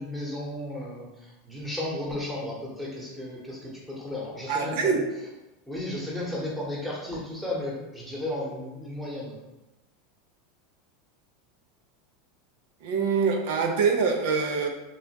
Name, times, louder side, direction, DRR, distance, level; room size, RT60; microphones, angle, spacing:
voice 1, 0.0-5.0 5.7-9.4, left 1 dB, ahead, -5 dB, 1.0 m, -34 dB
voice 2, 4.5-5.0 12.8-14.7, right 5 dB, 70° right, 3 dB, 0.4 m, -24 dB
2.8 x 2.2 x 2.8 m, 1.0 s
hypercardioid pair, 100°, 0 cm